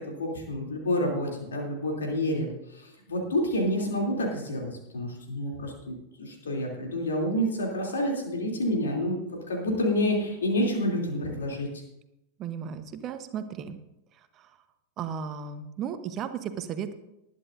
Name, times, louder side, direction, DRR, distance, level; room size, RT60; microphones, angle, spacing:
voice 1, 0.1-11.7, left 1 dB, 70° left, 0 dB, 3.1 m, -29 dB
voice 2, 12.4-13.8 14.4-14.5 15.0-16.9, right 7 dB, 30° right, 10 dB, 1.1 m, -35 dB
20.0 x 10.5 x 2.7 m, 0.88 s
figure-of-eight pair, 90°, 0 cm